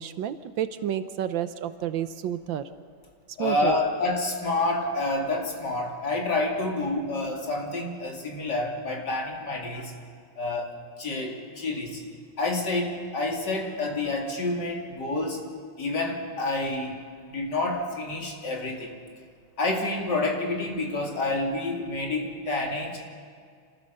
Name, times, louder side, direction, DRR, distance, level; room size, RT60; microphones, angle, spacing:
voice 1, 0.0-2.7 3.4-3.8, right 10 dB, 70° right, 11 dB, 1.4 m, -30 dB
voice 2, 3.4-9.9 10.4-10.7 11.0-12.0 12.4-15.4 15.8-17.0 17.3-18.9 19.6-23.0, left 2 dB, 55° left, 0 dB, 3.2 m, -28 dB
27.0 x 15.0 x 6.7 m, 2.1 s
omnidirectional pair, 2.2 m